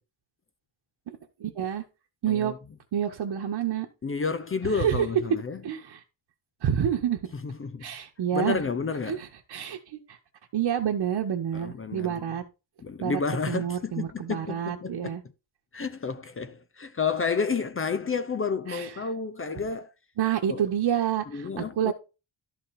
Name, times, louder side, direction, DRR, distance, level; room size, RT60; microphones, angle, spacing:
voice 1, 1.1-1.8 2.2-2.5 2.9-3.9 4.6-5.0 5.6-6.0 6.6-7.2 7.8-8.6 9.1-10.2 10.5-12.4 13.0-13.2 13.5-15.2 18.7-18.9 20.2-21.9, right 9 dB, 75° right, 1.8 m, -28 dB
voice 2, 2.3-2.6 4.0-5.6 7.3-7.9 8.3-9.2 11.5-12.1 12.8-15.2 15.7-19.9 20.5-20.6 21.3-21.9, left 5 dB, 30° left, 0.8 m, -30 dB
13.0 x 5.8 x 4.4 m
wide cardioid pair, 160°, 44 cm